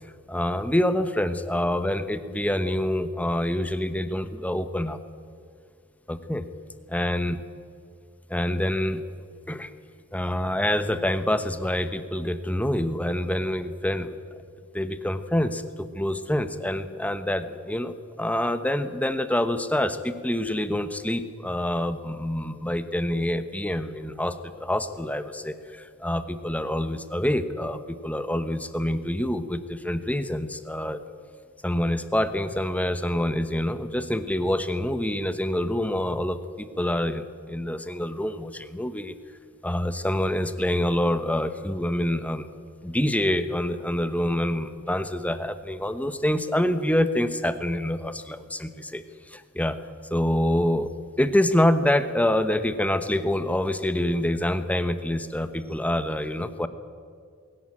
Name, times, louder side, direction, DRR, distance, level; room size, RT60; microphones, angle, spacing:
voice 1, 0.3-5.0 6.1-6.4 6.9-7.4 8.3-9.0 9.5-9.7 10.1-14.2 14.7-31.0 31.6-39.1 39.6-42.5 42.8-49.8 50.1-50.9 51.2-56.7, left 1 dB, 5° left, 11 dB, 1.0 m, -26 dB
21.0 x 17.5 x 8.7 m, 2.2 s
head